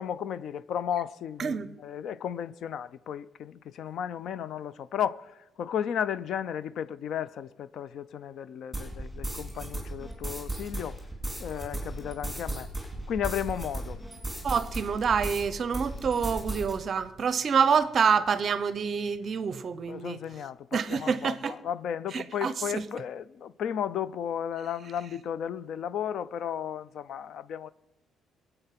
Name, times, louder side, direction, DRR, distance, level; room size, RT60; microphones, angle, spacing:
voice 1, 0.0-11.0 11.4-12.7 13.1-14.0 19.9-27.7, left 9 dB, 50° left, 0.4 m, -34 dB
sound 1, 8.7-15.5 15.7-16.7, right 1 dB, ahead, 3.6 m, -36 dB
voice 2, 14.4-20.2 20.7-21.5 22.1-22.8, right 6 dB, 35° right, 0.6 m, -27 dB
22.0 x 8.0 x 5.8 m
cardioid pair, 175°, 0 cm